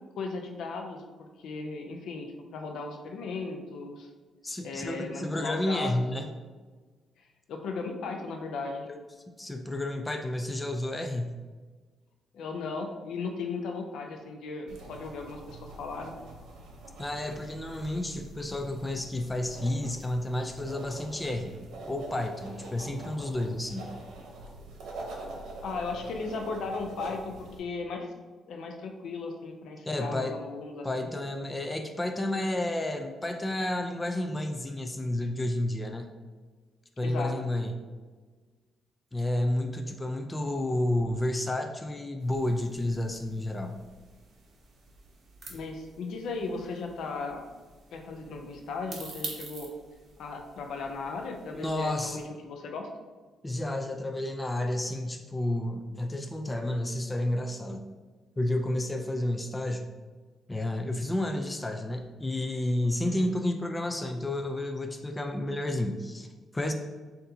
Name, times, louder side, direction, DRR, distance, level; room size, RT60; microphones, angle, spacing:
voice 1, 0.2-4.1 4.6-5.9 7.5-8.9 12.3-16.2 25.6-28.1 28.5-31.1 37.0-37.3 45.5-47.4 47.9-49.7 50.2-52.9 63.0-63.3, left 4 dB, 75° left, 3 dB, 0.6 m, -36 dB
voice 2, 4.4-6.3 8.9-9.0 9.4-11.4 17.0-21.6 21.9-23.9 29.9-30.4 30.8-36.1 37.0-37.7 39.1-43.8 51.5-52.2 53.4-57.8 58.4-59.9 60.5-66.3 66.5-66.7, left 1 dB, 15° left, 4 dB, 0.3 m, -31 dB
sound 1, 14.7-27.6, right 2 dB, 80° right, 0.9 m, -44 dB
sound 2, 42.2-52.2, right 3 dB, 50° right, 1.0 m, -48 dB
6.7 x 2.6 x 2.7 m, 1.4 s
cardioid pair, 130°, 0 cm